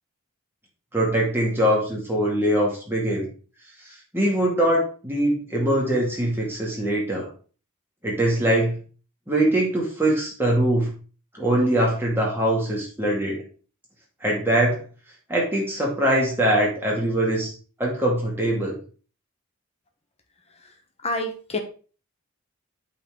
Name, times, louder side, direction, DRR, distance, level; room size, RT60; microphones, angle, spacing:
voice 1, 0.9-3.3 4.1-7.3 8.0-8.8 9.3-10.9 11.3-13.4 14.2-14.8 15.3-17.5 17.8-18.8, right 1 dB, 10° right, -3 dB, 2.2 m, -22 dB
voice 2, 21.0-21.6, left 1 dB, 30° left, 4 dB, 1.2 m, -27 dB
8.6 x 4.3 x 3.9 m, 0.38 s
head